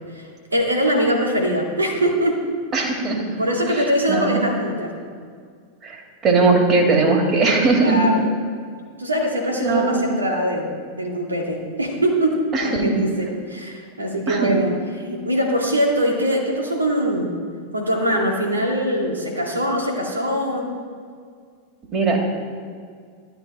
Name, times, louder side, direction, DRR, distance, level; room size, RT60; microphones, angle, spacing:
voice 1, 0.5-2.4 3.4-4.9 7.8-8.3 9.0-10.7 10.9-14.7 15.0-17.3 17.7-20.7, equal, 85° right, 1 dB, 2.2 m, -22 dB
voice 2, 2.7-3.4 3.7-4.4 5.8-8.0 9.6-10.0 12.5-13.0 14.3-14.6 21.9-22.2, right 3 dB, 30° right, 1 dB, 2.6 m, -19 dB
12.5 x 11.5 x 4.3 m, 2.1 s
figure-of-eight pair, 90°, 0 cm